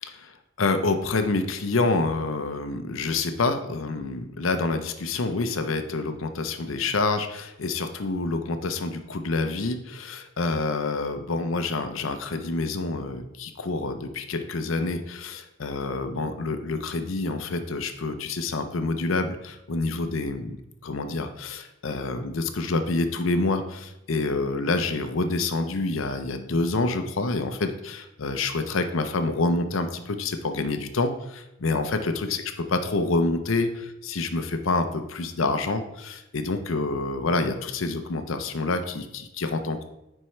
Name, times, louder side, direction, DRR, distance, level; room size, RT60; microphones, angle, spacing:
voice 1, 0.0-20.6 20.8-39.8, left 3 dB, 75° left, 8 dB, 0.6 m, -27 dB
10.0 x 4.4 x 3.2 m, 0.89 s
head